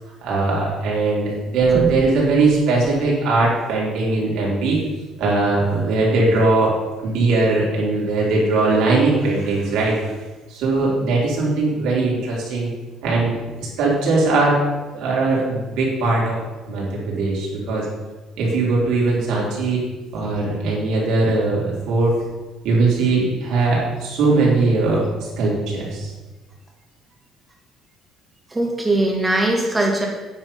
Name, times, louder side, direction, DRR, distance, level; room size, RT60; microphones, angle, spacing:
voice 1, 0.2-4.8 5.2-6.7 7.0-10.1 10.5-12.7 13.0-13.3 13.6-14.6 14.9-16.4 16.7-17.9 18.4-19.8 20.1-22.1 22.6-26.1, right 3 dB, 70° right, -4 dB, 4.2 m, -20 dB
voice 2, 28.5-30.1, right 2 dB, 10° right, 0 dB, 2.1 m, -20 dB
9.6 x 7.9 x 5.8 m, 1.2 s
cardioid pair, 155°, 0 cm